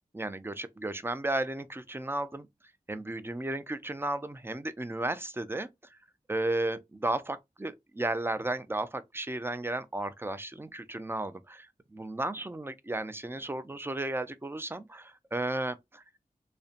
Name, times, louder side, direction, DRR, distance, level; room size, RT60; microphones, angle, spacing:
voice 1, 0.1-2.5 2.9-6.0 6.3-16.0, right 2 dB, 15° right, 0.4 m, -34 dB
2.6 x 2.1 x 2.4 m
cardioid pair, 45°, 15 cm